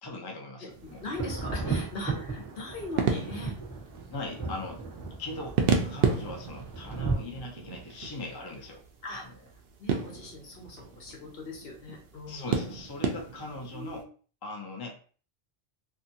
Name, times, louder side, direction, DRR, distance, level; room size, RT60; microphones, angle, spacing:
voice 1, 0.0-1.0 1.5-1.7 4.1-4.8 5.2-8.8 9.1-9.3 12.3-14.0 14.4-14.9, left 2 dB, 30° left, 2 dB, 0.4 m, -40 dB
voice 2, 0.6-3.6 9.0-9.2 9.8-12.5 13.5-14.0, left 2 dB, 65° left, -1 dB, 1.0 m, -40 dB
sound 1, 0.7-14.0, right 5 dB, 70° right, 0.8 m, -34 dB
Thunder, 1.0-7.1, right 4 dB, 15° left, 1.1 m, -35 dB
2.7 x 2.4 x 2.7 m, 0.41 s
omnidirectional pair, 1.1 m